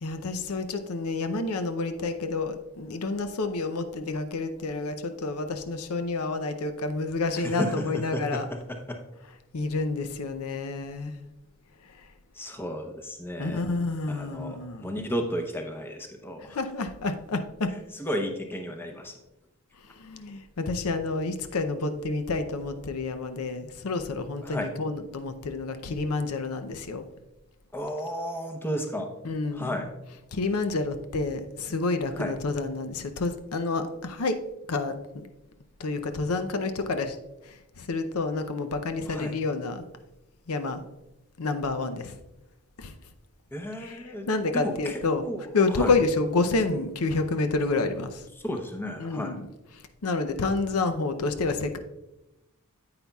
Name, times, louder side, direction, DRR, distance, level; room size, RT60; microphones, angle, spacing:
voice 1, 0.0-8.5 9.5-11.2 13.4-14.9 16.4-17.8 20.0-27.1 29.2-29.7 30.3-35.3 35.8-37.2 37.4-39.8 40.5-40.8 41.4-42.2 42.8-42.9 43.8-44.0 44.3-45.3 45.5-48.2 49.0-49.5 50.0-51.8, left 3 dB, 75° left, 0.6 m, -29 dB
voice 2, 7.3-9.0 12.3-13.7 14.1-16.6 17.7-19.2 24.4-24.7 27.7-29.1 29.5-29.9 32.2-32.3 39.1-39.4 43.5-44.3 44.5-45.9 48.3-49.4, equal, 10° left, 0.8 m, -33 dB
9.4 x 8.7 x 2.3 m
head